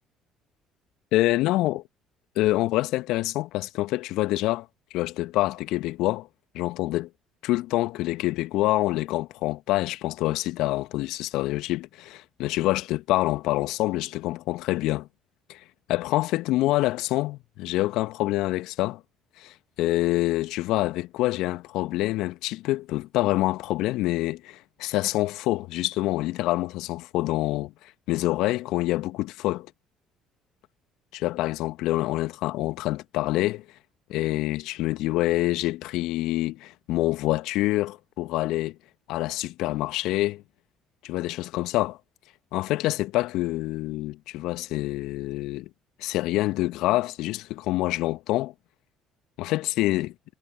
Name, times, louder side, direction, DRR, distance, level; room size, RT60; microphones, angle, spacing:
voice 1, 1.1-1.8 2.3-4.7 4.9-6.3 6.5-7.1 7.4-15.1 15.5-15.6 15.9-19.0 19.4-29.7 31.1-33.6 34.1-38.8 39.1-40.4 41.0-42.0 42.5-45.7 46.0-48.5 49.4-50.1, left 17 dB, 65° left, 1.5 m, -26 dB
hypercardioid pair, 55°, 0 cm